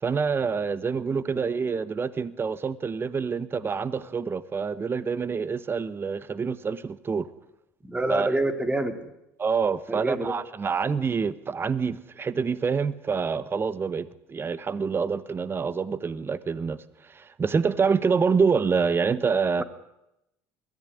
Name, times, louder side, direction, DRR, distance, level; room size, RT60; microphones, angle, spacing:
voice 1, 0.0-7.3 8.1-8.3 9.4-16.8 17.0-19.6, right 5 dB, 30° right, 16 dB, 1.1 m, -26 dB
voice 2, 7.8-9.1 9.9-10.3, right 2 dB, 15° right, 9 dB, 2.8 m, -27 dB
21.0 x 14.5 x 9.9 m, 0.86 s
supercardioid pair, 85°, 8 cm